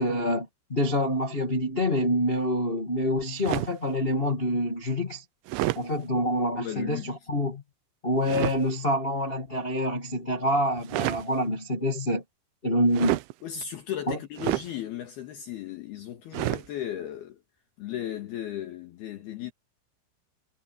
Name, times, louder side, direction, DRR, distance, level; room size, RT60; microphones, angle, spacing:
voice 1, 0.0-5.2 5.7-7.6 8.0-12.2 12.6-13.2 14.1-14.2, equal, 35° left, 0.9 m, -26 dB
sound 1, 3.4-3.8 5.5-5.9 8.3-8.6 10.8-11.3 12.9-13.3 14.4-14.7 16.3-16.7, right 19 dB, 85° right, 3.1 m, -28 dB
voice 2, 6.6-7.1 13.4-17.4 17.8-19.5, left 11 dB, 65° left, 3.4 m, -36 dB
omnidirectional pair, 5.4 m